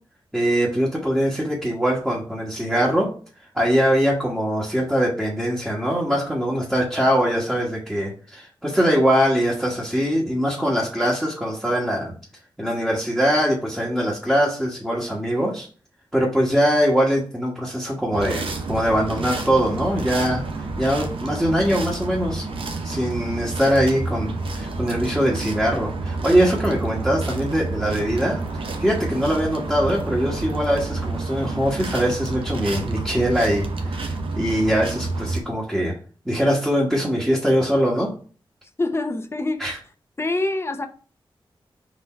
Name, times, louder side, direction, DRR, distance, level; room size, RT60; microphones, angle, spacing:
voice 1, 0.3-3.1 3.5-12.1 12.6-15.7 16.1-20.4 20.8-22.5 22.8-28.4 28.8-35.9 36.2-38.1 39.6-39.8, equal, 5° right, -5 dB, 1.2 m, -22 dB
sound 1, 18.1-35.4, right 3 dB, 75° right, 0.7 m, -29 dB
voice 2, 38.8-39.7 40.2-40.9, left 2 dB, 30° left, 6 dB, 0.7 m, -25 dB
4.1 x 2.6 x 4.3 m, 0.40 s
wide cardioid pair, 70°, 9 cm